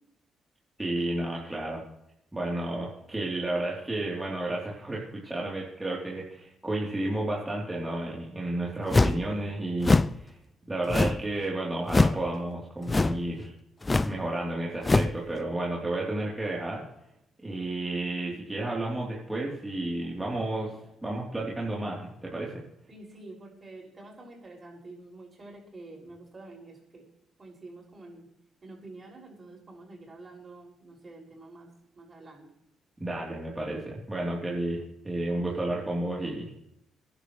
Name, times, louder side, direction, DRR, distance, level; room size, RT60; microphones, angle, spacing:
voice 1, 0.8-1.8 2.3-10.3 10.7-13.5 14.0-16.8 17.4-20.7 21.0-22.5 33.0-36.6, right 1 dB, 20° right, -4 dB, 3.5 m, -32 dB
sound 1, 8.9-9.3 9.8-10.2 10.9-11.3 11.9-12.2 12.9-13.3 13.8-14.2 14.8-15.2, left 3 dB, 25° left, 0.5 m, -23 dB
voice 2, 22.9-27.0 27.4-28.3 28.6-31.7 31.9-32.5, right 2 dB, 35° right, -1 dB, 6.5 m, -48 dB
24.0 x 11.0 x 3.3 m, 0.80 s
hypercardioid pair, 50°, 0 cm